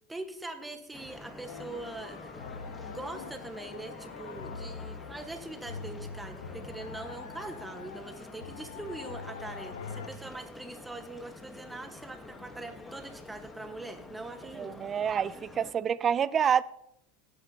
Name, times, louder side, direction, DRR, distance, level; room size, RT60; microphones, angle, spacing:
voice 1, 0.1-2.3 2.7-14.8, right 2 dB, 10° right, 6 dB, 1.4 m, -42 dB
sound 1, 0.9-15.7, left 2 dB, 15° left, 1.3 m, -48 dB
sound 2, 1.5-10.1, left 5 dB, 80° left, 0.7 m, -43 dB
voice 2, 14.5-16.6, right 8 dB, 30° right, 19 dB, 0.4 m, -27 dB
16.5 x 8.9 x 2.9 m, 0.80 s
hypercardioid pair, 90°, 0 cm